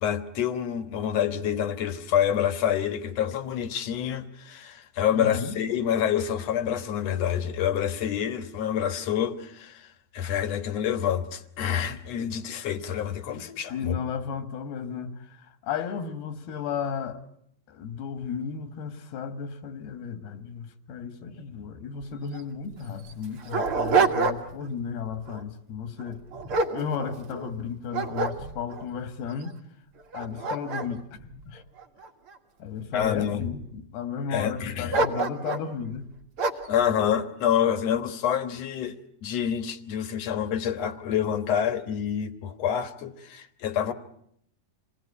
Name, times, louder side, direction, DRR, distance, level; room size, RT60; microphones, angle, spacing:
voice 1, 0.0-14.0 32.9-33.4 34.3-35.0 36.7-43.9, left 9 dB, 60° left, 2.0 m, -27 dB
voice 2, 5.1-5.6 13.7-17.2 17.7-26.2 26.7-29.6 30.1-31.6 32.6-36.1, left 6 dB, 85° left, 3.8 m, -34 dB
Dog, 22.0-22.1 22.3-22.4 23.0-24.7 25.1-25.4 26.0-27.5 27.9-28.8 29.4-29.5 30.0-32.3 33.0-33.6 34.9-35.7 36.4-36.8, right 4 dB, 50° right, 1.9 m, -27 dB
27.5 x 20.0 x 9.8 m
omnidirectional pair, 4.4 m